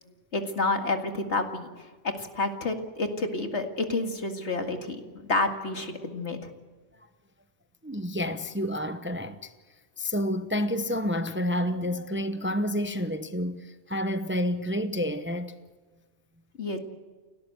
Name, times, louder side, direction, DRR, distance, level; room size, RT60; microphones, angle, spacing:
voice 1, 0.3-6.5 16.6-16.8, left 2 dB, 70° left, 2.3 m, -29 dB
voice 2, 7.8-9.5 10.0-15.5, equal, 10° right, 0.7 m, -29 dB
30.0 x 12.0 x 8.1 m
omnidirectional pair, 1.2 m